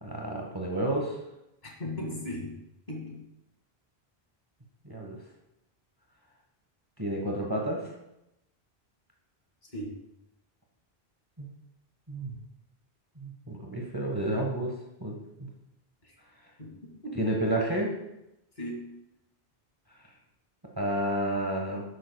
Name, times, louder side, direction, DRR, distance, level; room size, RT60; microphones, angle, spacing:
voice 1, 0.0-1.2 4.8-5.2 7.0-7.8 11.4-11.5 12.1-12.3 13.2-14.7 15.0-15.5 17.1-17.9 20.8-21.8, right 1 dB, 20° right, -1 dB, 1.3 m, -30 dB
voice 2, 1.6-2.6 2.9-3.2 9.7-10.0 16.0-16.2 16.6-17.2 18.6-19.0, left 1 dB, 45° left, -1 dB, 2.4 m, -38 dB
12.0 x 9.0 x 2.3 m, 0.87 s
omnidirectional pair, 1.1 m